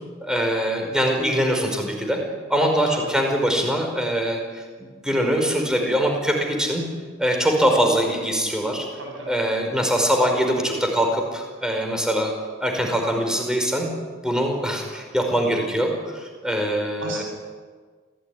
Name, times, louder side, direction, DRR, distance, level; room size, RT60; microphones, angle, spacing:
voice 1, 0.2-2.2 2.5-6.8 7.2-8.9 9.3-12.3 12.6-13.9 14.2-17.2, equal, 5° right, 2 dB, 5.1 m, -23 dB
voice 2, 9.0-9.4 17.0-17.2, right 1 dB, 90° right, 0 dB, 7.9 m, -34 dB
27.0 x 17.0 x 10.0 m, 1.5 s
head